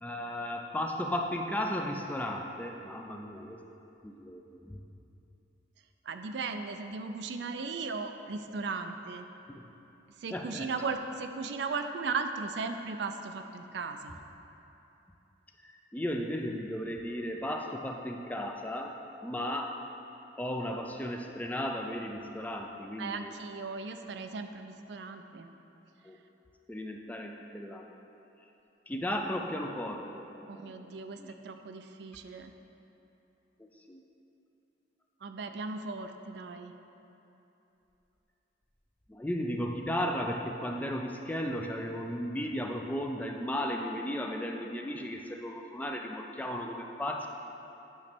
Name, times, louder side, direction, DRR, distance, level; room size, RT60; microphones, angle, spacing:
voice 1, 0.0-3.6 4.0-4.8 9.5-9.6 10.3-10.7 15.6-18.9 19.2-19.7 20.4-23.3 26.0-26.2 26.7-27.9 28.9-30.8 31.2-31.3 33.6-34.0 39.1-47.3, left 1 dB, 10° left, 2 dB, 0.3 m, -35 dB
voice 2, 6.1-9.3 10.2-14.2 23.0-25.5 30.5-32.5 35.2-36.7, right 4 dB, 65° right, 7 dB, 0.4 m, -37 dB
8.8 x 3.1 x 5.9 m, 2.9 s
head